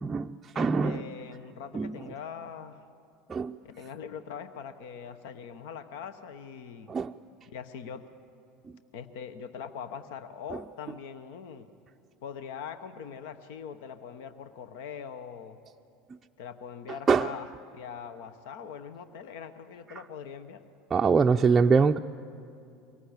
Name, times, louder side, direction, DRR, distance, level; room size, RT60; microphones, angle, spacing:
voice 1, 0.0-1.0 1.7-1.9 3.3-3.6 6.9-7.1 17.1-17.3 20.9-22.0, right 5 dB, 25° right, 3 dB, 0.5 m, -23 dB
voice 2, 0.5-2.8 3.6-6.9 7.5-8.1 8.9-11.7 12.2-15.6 16.4-17.5 17.7-20.6, left 7 dB, 70° left, 11 dB, 1.0 m, -42 dB
24.0 x 18.5 x 8.2 m, 2.6 s
hypercardioid pair, 75°, 0 cm